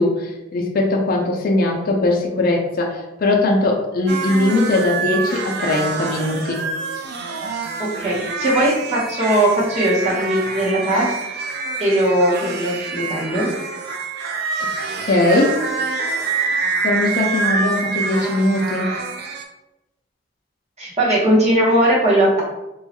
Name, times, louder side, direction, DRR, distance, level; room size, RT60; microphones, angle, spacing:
voice 1, 0.0-6.6 15.0-15.6 16.8-18.9, left 2 dB, 50° left, 0 dB, 0.4 m, -20 dB
sound 1, 4.1-19.4, right 4 dB, 55° right, 0.3 m, -26 dB
voice 2, 7.8-11.1 11.8-13.5 20.8-22.4, right 1 dB, 35° right, -5 dB, 0.9 m, -19 dB
2.9 x 2.3 x 2.8 m, 0.98 s
head